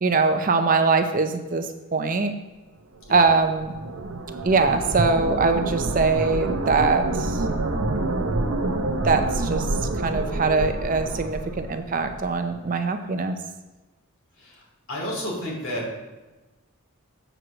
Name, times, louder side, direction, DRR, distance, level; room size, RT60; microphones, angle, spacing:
voice 1, 0.0-2.3 3.1-3.7 4.4-7.4 9.0-9.7 10.0-13.4, right 4 dB, 40° right, 7 dB, 0.5 m, -22 dB
sound 1, 3.1-12.3, right 2 dB, 70° right, 0.7 m, -28 dB
voice 2, 14.4-16.0, equal, 65° left, -2 dB, 2.8 m, -31 dB
7.8 x 4.6 x 6.2 m, 1.2 s
head